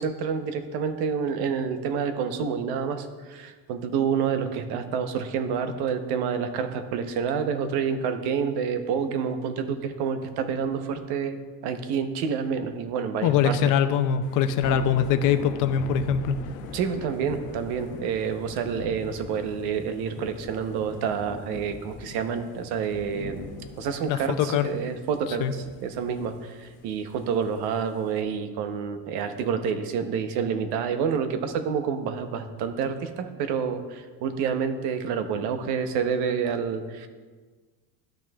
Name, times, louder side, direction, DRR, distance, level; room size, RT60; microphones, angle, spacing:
voice 1, 0.0-13.6 16.7-23.5 23.8-37.1, right 6 dB, 70° right, 8 dB, 0.9 m, -28 dB
voice 2, 13.2-16.4 24.1-24.7 25.4-25.5, left 8 dB, 50° left, 9 dB, 0.5 m, -23 dB
Thunder / Rain, 14.2-28.2, left 4 dB, 90° left, 1.0 m, -42 dB
12.5 x 6.1 x 2.3 m, 1.4 s
cardioid pair, 170°, 39 cm